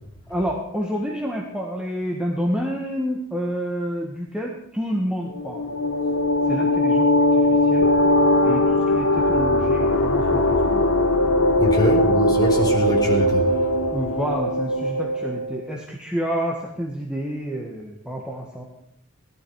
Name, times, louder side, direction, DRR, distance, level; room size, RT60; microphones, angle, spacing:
voice 1, 0.3-5.7 6.5-7.8 8.4-10.9 13.9-18.6, equal, 5° right, -1 dB, 1.7 m, -29 dB
sound 1, 5.3-15.6, left 1 dB, 65° left, 1.2 m, -20 dB
voice 2, 11.6-13.7, equal, 20° left, -1 dB, 4.4 m, -23 dB
18.5 x 13.0 x 4.8 m, 0.73 s
head